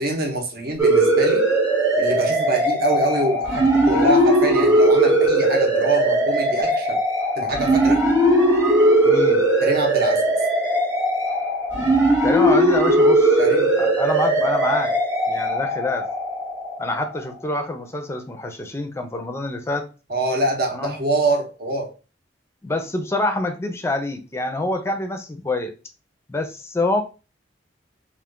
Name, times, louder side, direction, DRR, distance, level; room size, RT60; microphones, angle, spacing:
voice 1, 0.0-1.5 2.0-7.0 7.4-8.0 9.6-10.3 13.4-13.7 20.1-21.9, right 1 dB, 55° right, 0.8 m, -24 dB
sound 1, 0.8-17.2, right 1 dB, 15° right, 0.9 m, -19 dB
voice 2, 9.0-9.5 12.2-13.4 13.8-15.0 15.3-16.0 16.8-19.9 20.7-21.0 22.6-25.7 26.3-27.0, left 2 dB, 15° left, 0.4 m, -26 dB
2.4 x 2.4 x 3.6 m
head